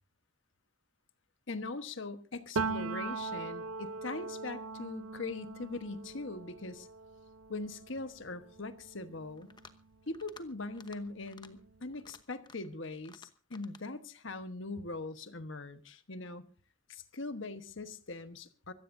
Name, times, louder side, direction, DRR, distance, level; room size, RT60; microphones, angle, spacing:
voice 1, 1.5-6.9 7.5-9.5 10.1-16.4 16.9-18.7, left 3 dB, 65° left, 1.3 m, -41 dB
Piano, 2.6-10.2 10.5-12.1, right 4 dB, 85° right, 0.6 m, -41 dB
sound 1, 9.4-9.8 10.1-10.5 10.7-11.0 11.3-11.5 11.9-12.7 13.1-13.8, left 4 dB, 20° left, 1.0 m, -54 dB
25.0 x 15.5 x 2.7 m
head